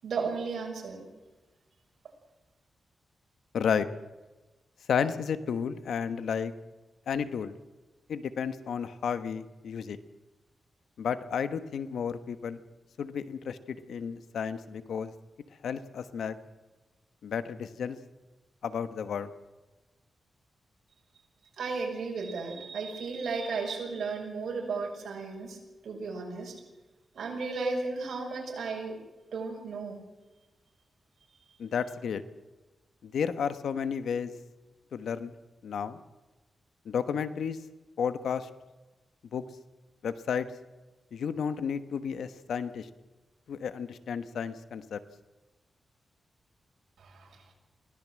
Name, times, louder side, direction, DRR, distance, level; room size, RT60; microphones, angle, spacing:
voice 1, 0.0-1.0 21.6-25.6 25.8-26.5 27.1-29.0 29.3-30.0 47.0-47.3, right 4 dB, 75° right, 1 dB, 6.7 m, -34 dB
voice 2, 3.5-3.9 4.9-6.5 7.1-7.6 8.1-10.0 11.0-12.6 13.0-15.1 15.6-16.3 17.2-18.0 18.6-19.3 31.6-32.2 33.0-34.3 34.9-35.3 35.6-36.0 36.8-37.6 38.0-38.5 39.3-39.4 40.0-40.5 41.1-42.9 43.5-45.0, left 7 dB, 85° left, 11 dB, 1.2 m, -32 dB
23.5 x 17.5 x 7.6 m, 1.1 s
wide cardioid pair, 100°, 0 cm